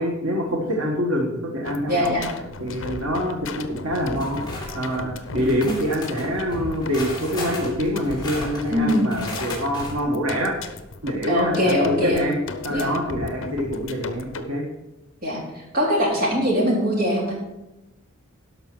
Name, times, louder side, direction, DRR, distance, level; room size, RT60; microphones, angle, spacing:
voice 1, 0.0-2.1 2.6-10.5 11.0-12.3 12.6-14.6, equal, 90° right, -1 dB, 1.7 m, -25 dB
sound 1, 1.6-14.4, left 3 dB, 65° left, 0.9 m, -36 dB
voice 2, 1.9-2.3 8.7-9.1 11.3-12.2 12.7-12.9 15.2-17.3, equal, 45° right, -2 dB, 3.4 m, -22 dB
sound 2, 4.0-5.0 5.4-9.9, left 2 dB, 20° left, 3.1 m, -35 dB
12.0 x 5.8 x 6.1 m, 0.98 s
head